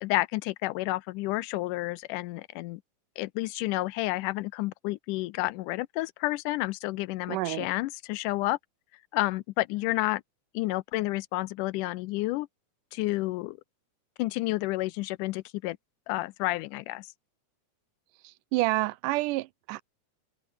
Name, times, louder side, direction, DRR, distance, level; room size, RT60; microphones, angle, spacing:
voice 1, 0.0-2.8 3.2-8.6 9.1-10.2 10.5-12.5 12.9-13.6 14.2-15.8 16.1-17.1, left 19 dB, 85° left, 2.1 m, -30 dB
voice 2, 7.3-7.7 18.5-19.8, right 19 dB, 85° right, 2.2 m, -28 dB
omnidirectional pair, 3.7 m